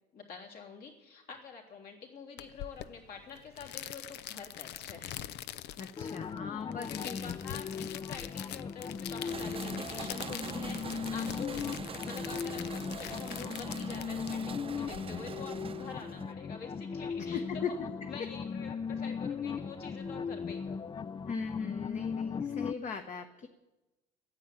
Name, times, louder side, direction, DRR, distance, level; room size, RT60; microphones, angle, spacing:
voice 1, 0.1-5.2 6.9-11.8 12.0-17.8 18.1-21.0, left 5 dB, 65° left, 0 dB, 3.4 m, -47 dB
sound 1, 2.4-15.0, left 12 dB, 80° left, 0.7 m, -44 dB
voice 2, 5.8-7.2 17.2-17.7 21.3-23.5, left 6 dB, 45° left, 5 dB, 1.2 m, -39 dB
sound 2, 6.0-22.7, left 6 dB, 25° left, 0.4 m, -38 dB
sound 3, 9.2-16.3, right 6 dB, 35° right, 0.7 m, -44 dB
13.5 x 9.6 x 9.2 m, 1.0 s
cardioid pair, 110°, 17 cm